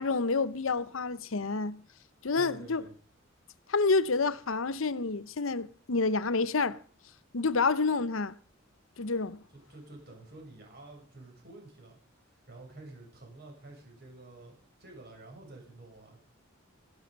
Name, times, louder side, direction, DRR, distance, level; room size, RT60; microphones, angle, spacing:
voice 1, 0.0-1.8 2.2-2.9 3.7-6.8 7.3-8.4 9.0-9.4, left 4 dB, 80° left, 0.9 m, -28 dB
voice 2, 2.3-2.9 9.5-11.9 12.5-16.2, right 2 dB, 55° right, 7.9 m, -50 dB
16.5 x 13.0 x 5.3 m
head